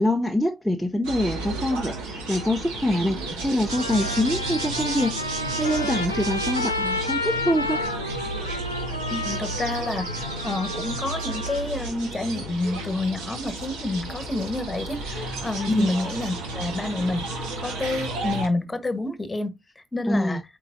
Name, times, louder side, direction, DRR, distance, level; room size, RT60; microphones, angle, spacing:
voice 1, 0.0-5.2 5.5-7.8 15.7-15.9 20.1-20.4, left 1 dB, ahead, 0.8 m, -25 dB
sound 1, 1.0-18.5, right 2 dB, 65° right, 2.1 m, -33 dB
Trumpet, 3.0-3.1 3.7-11.6, left 2 dB, 90° left, 1.0 m, -31 dB
sound 2, 3.9-11.9, right 2 dB, 90° right, 0.7 m, -35 dB
voice 2, 9.1-17.3 17.6-20.4, left 2 dB, 20° left, 1.4 m, -29 dB
9.0 x 4.7 x 2.7 m
figure-of-eight pair, 50°, 0 cm